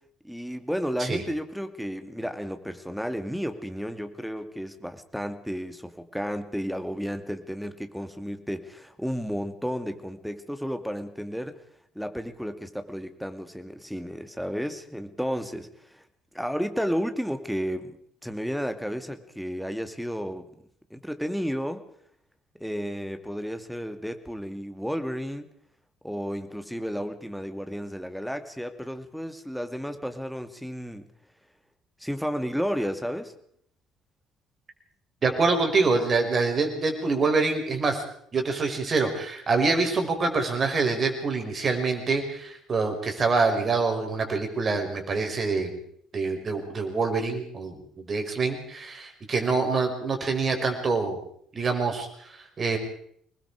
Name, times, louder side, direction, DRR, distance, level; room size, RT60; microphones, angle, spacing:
voice 1, 0.2-11.6 11.9-16.0 16.3-18.0 18.2-20.5 20.9-21.8 22.6-25.5 26.0-31.1 32.0-33.3, equal, ahead, 8 dB, 2.4 m, -32 dB
voice 2, 35.2-38.0 38.3-45.8 46.1-51.2 51.5-52.1 52.4-52.8, right 4 dB, 40° right, 5 dB, 5.3 m, -25 dB
26.0 x 20.5 x 4.9 m, 0.67 s
figure-of-eight pair, 50°, 0 cm